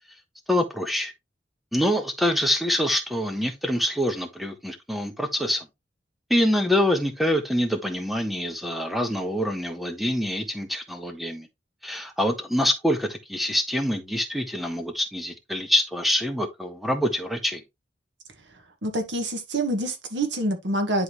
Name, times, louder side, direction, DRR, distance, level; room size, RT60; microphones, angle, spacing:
voice 1, 0.5-1.1 1.7-5.7 6.3-11.5 11.8-17.6, left 1 dB, ahead, 1.3 m, -25 dB
voice 2, 18.8-21.0, right 1 dB, 90° right, 1.9 m, -26 dB
10.5 x 3.9 x 3.2 m
head